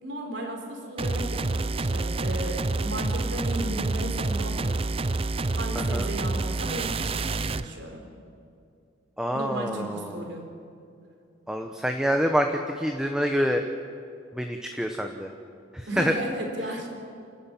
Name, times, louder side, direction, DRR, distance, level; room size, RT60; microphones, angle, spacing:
voice 1, 0.0-4.9 5.5-8.0 9.3-10.4 15.9-16.9, right 1 dB, 60° right, 3 dB, 4.1 m, -35 dB
sound 1, 1.0-7.7, right 3 dB, 30° right, 0.5 m, -28 dB
voice 2, 5.7-6.1 9.2-10.3 11.5-13.6 14.3-15.3 15.7-16.1 16.6-16.7, equal, 5° right, 4 dB, 0.9 m, -27 dB
29.0 x 13.0 x 9.1 m, 2.5 s
head